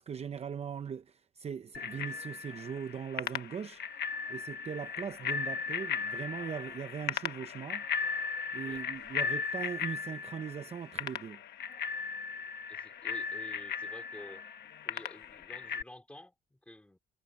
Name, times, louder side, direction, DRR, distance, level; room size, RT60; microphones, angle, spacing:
voice 1, 0.0-3.9 4.3-7.9 8.5-11.4, right 7 dB, 40° right, 0.7 m, -40 dB
Bicycle bell, 1.7-15.8, left 6 dB, 80° left, 1.2 m, -37 dB
voice 2, 12.7-14.5 14.8-17.0, left 1 dB, 5° left, 2.7 m, -51 dB
wide cardioid pair, 170°, 17 cm